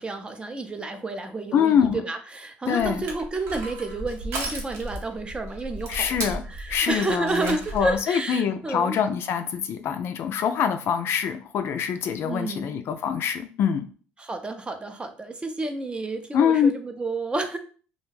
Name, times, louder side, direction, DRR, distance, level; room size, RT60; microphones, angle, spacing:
voice 1, 0.0-9.0 12.2-12.8 14.2-17.6, right 2 dB, 20° right, 7 dB, 0.5 m, -30 dB
voice 2, 1.5-2.0 2.7-3.0 5.9-13.9 16.3-16.7, left 8 dB, 55° left, 8 dB, 0.3 m, -24 dB
Crushing, 2.8-8.0, right 2 dB, 70° right, 0.8 m, -35 dB
2.4 x 2.2 x 3.1 m, 0.40 s
supercardioid pair, 80°, 5 cm